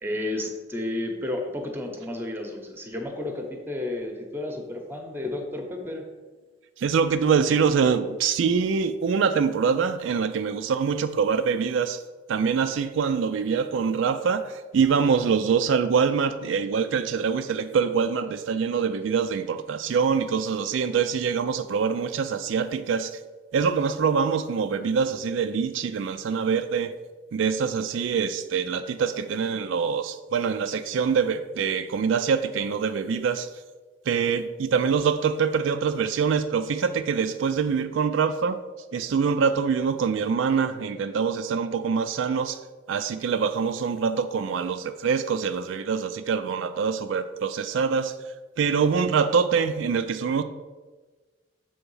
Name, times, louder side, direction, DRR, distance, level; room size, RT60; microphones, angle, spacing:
voice 1, 0.0-6.0, left 1 dB, 10° right, 3 dB, 0.8 m, -32 dB
voice 2, 6.8-12.0 12.3-23.2 23.5-26.9 27.3-33.5 34.1-38.6 38.9-42.6 42.9-48.1 48.6-50.4, right 6 dB, 75° right, 9 dB, 0.3 m, -24 dB
6.9 x 3.5 x 5.4 m, 1.3 s
head